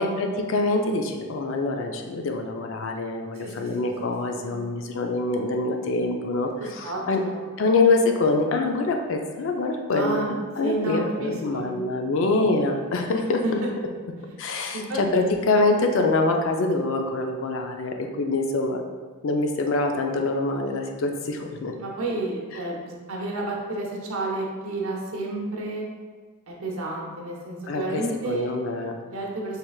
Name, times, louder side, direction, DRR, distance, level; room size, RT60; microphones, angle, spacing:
voice 1, 0.0-7.2 7.6-13.4 14.4-18.8 19.2-21.7 27.7-28.9, left 3 dB, 65° left, 4 dB, 0.4 m, -25 dB
voice 2, 6.6-7.7 9.9-10.3 10.6-11.7 13.2-13.5 14.7-15.4 21.8-25.8 26.5-28.5 29.1-29.6, right 2 dB, 80° right, -1 dB, 0.8 m, -31 dB
4.5 x 3.3 x 2.3 m, 1.5 s
head